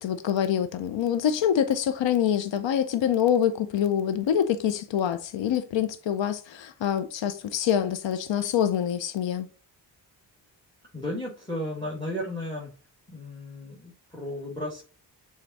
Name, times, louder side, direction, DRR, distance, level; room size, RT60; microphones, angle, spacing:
voice 1, 0.0-9.5, left 9 dB, 85° left, 0.6 m, -25 dB
voice 2, 10.9-12.7 13.1-14.8, left 1 dB, 10° left, 1.6 m, -34 dB
6.8 x 3.7 x 4.1 m
wide cardioid pair, 115°, 43 cm